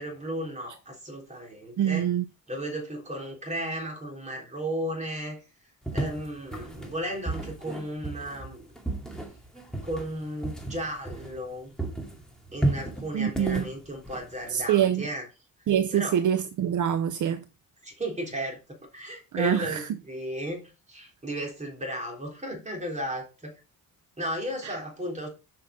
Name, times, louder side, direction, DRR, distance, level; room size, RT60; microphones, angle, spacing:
voice 1, 0.0-2.1 2.5-5.4 5.9-8.7 9.8-11.7 12.5-15.2 15.9-16.2 17.8-18.6 18.9-23.5 24.2-25.3, equal, 20° right, 3.5 m, -34 dB
voice 2, 1.8-2.2 13.1-13.6 14.5-15.0 15.7-17.4 19.3-19.9 24.6-24.7, right 9 dB, 60° right, 0.6 m, -25 dB
sound 1, 5.8-11.5 11.8-14.7, right 2 dB, ahead, 2.1 m, -33 dB
7.8 x 5.7 x 5.1 m
cardioid pair, 130°, 34 cm